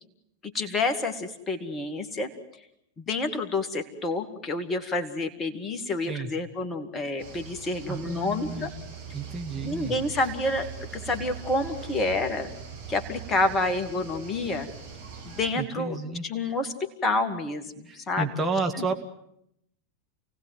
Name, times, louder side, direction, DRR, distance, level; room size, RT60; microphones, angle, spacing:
voice 1, 0.4-2.3 3.0-8.7 9.6-10.7 11.1-12.5 12.9-14.7 15.3-16.0 16.2-18.3, left 2 dB, 20° left, 7 dB, 2.3 m, -28 dB
sound 1, 7.2-15.5, right 7 dB, 60° right, 6.0 m, -41 dB
voice 2, 7.9-8.7 9.1-10.0 15.5-16.3 17.9-19.0, right 3 dB, 20° right, 3 dB, 2.0 m, -31 dB
28.5 x 18.5 x 9.4 m, 0.77 s
figure-of-eight pair, 90°, 0 cm